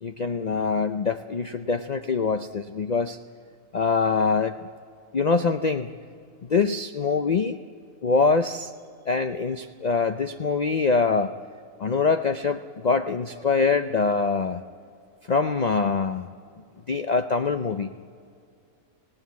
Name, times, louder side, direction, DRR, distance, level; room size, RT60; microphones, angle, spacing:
voice 1, 0.0-3.2 3.7-4.7 5.1-5.9 6.5-7.6 8.0-8.7 9.1-11.3 11.8-14.6 15.3-16.3 16.9-17.9, left 4 dB, 60° left, 8 dB, 0.4 m, -24 dB
24.5 x 17.5 x 9.4 m, 2.4 s
omnidirectional pair, 1.6 m